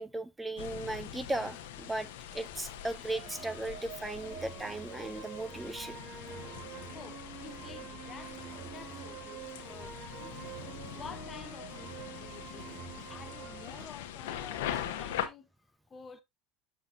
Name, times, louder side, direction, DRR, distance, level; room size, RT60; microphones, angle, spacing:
voice 1, 0.0-6.0, right 2 dB, 10° right, 0.8 m, -37 dB
sound 1, 0.6-15.3, left 10 dB, 80° left, 1.1 m, -42 dB
sound 2, 3.1-13.9, right 7 dB, 50° right, 2.7 m, -46 dB
voice 2, 6.9-10.4 10.9-12.8 13.1-15.5 15.9-16.2, left 6 dB, 30° left, 1.0 m, -50 dB
7.2 x 7.2 x 2.6 m
supercardioid pair, 100°, 0 cm